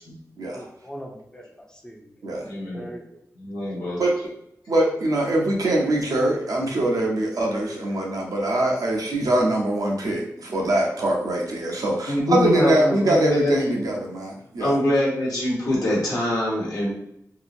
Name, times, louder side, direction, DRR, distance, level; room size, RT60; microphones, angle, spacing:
voice 1, 0.5-2.1 2.4-3.2, equal, 10° left, 0 dB, 0.6 m, -41 dB
voice 2, 2.4-2.9 3.4-4.0 12.1-13.8 14.6-16.9, left 1 dB, 85° left, -6 dB, 1.1 m, -24 dB
voice 3, 4.7-14.8, right 1 dB, 75° right, -2 dB, 0.7 m, -23 dB
2.8 x 2.5 x 2.5 m, 0.77 s
wide cardioid pair, 80°, 6 cm